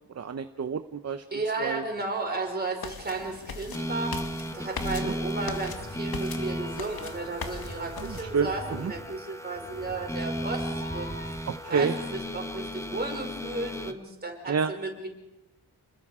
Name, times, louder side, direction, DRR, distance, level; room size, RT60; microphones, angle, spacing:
voice 1, 0.2-1.2 1.6-1.8 5.0-5.1 8.0-8.5 8.8-8.9 11.5-11.9 14.5-14.7, right 5 dB, 40° right, 9 dB, 0.8 m, -28 dB
voice 2, 1.3-4.2 4.5-15.1, right 3 dB, 25° right, 1 dB, 5.1 m, -34 dB
sound 1, 2.8-8.2, left 5 dB, 60° left, 2.0 m, -40 dB
sound 2, 3.7-13.9, equal, 5° left, 1.2 m, -35 dB
Meow, 5.4-12.1, left 1 dB, 25° left, 3.7 m, -44 dB
28.5 x 21.0 x 5.0 m, 0.96 s
wide cardioid pair, 135°, 40 cm